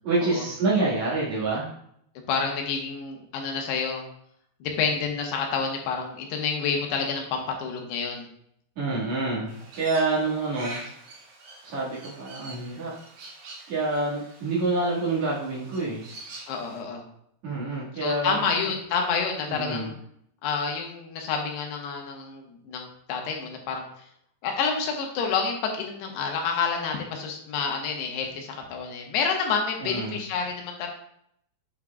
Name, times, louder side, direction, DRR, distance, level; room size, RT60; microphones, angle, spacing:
voice 1, 0.0-1.7 8.8-11.0 11.6-12.9 13.7-16.1 17.4-18.4 19.5-19.9 29.8-30.2, right 3 dB, 50° right, -7 dB, 2.6 m, -27 dB
voice 2, 2.3-4.1 4.6-8.3 16.5-17.1 18.0-19.9 20.4-24.1 24.4-30.9, left 5 dB, 90° left, 2 dB, 3.1 m, -29 dB
Crow, 9.5-16.8, right 2 dB, 70° right, 3.4 m, -45 dB
8.2 x 6.0 x 2.3 m, 0.70 s
omnidirectional pair, 4.7 m